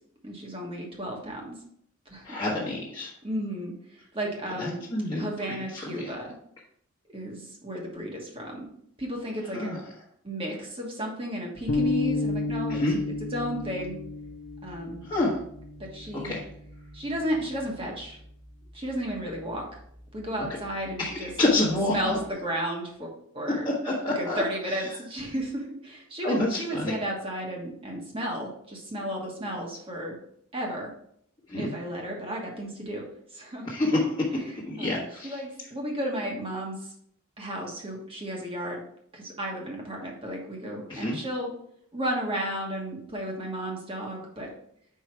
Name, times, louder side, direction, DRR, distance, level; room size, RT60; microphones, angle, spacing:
voice 1, 0.2-1.5 2.1-2.4 3.2-4.8 5.1-6.3 7.1-8.7 9.0-9.7 10.2-12.8 13.3-14.0 14.6-15.0 15.8-16.3 16.9-18.2 18.7-19.8 20.1-21.3 21.9-23.6 24.1-30.2 30.5-30.9 31.5-33.0 33.3-33.7 34.5-36.9 37.4-38.8 39.1-41.5 41.9-44.5, equal, 25° right, -1 dB, 1.3 m, -33 dB
voice 2, 2.2-3.1 4.6-5.6 5.9-6.1 9.5-9.8 12.7-13.0 15.1-15.3 16.2-16.4 21.0-21.1 21.4-21.9 23.8-24.4 26.2-26.9 31.5-31.7 33.6-34.0 34.7-35.3 40.9-41.2, left 2 dB, 25° left, -7 dB, 1.3 m, -27 dB
sound 1, 11.7-18.1, left 3 dB, 60° left, 1.1 m, -33 dB
4.8 x 4.8 x 4.6 m, 0.67 s
head